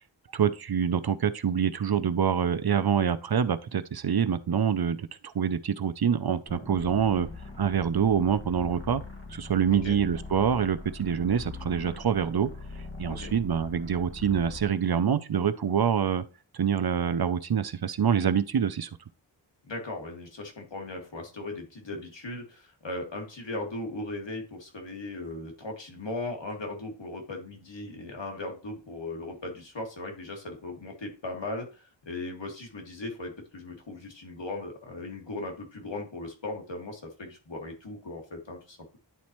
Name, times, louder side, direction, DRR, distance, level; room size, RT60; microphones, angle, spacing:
voice 1, 0.3-5.1 5.3-7.3 7.6-9.0 9.3-12.5 13.0-16.2 16.5-18.9, right 7 dB, 55° right, 0.6 m, -26 dB
sound 1, 6.5-14.7, left 3 dB, 30° left, 1.6 m, -41 dB
voice 2, 19.6-39.0, left 2 dB, 75° left, 2.1 m, -38 dB
10.5 x 4.2 x 3.0 m
wide cardioid pair, 75°, 44 cm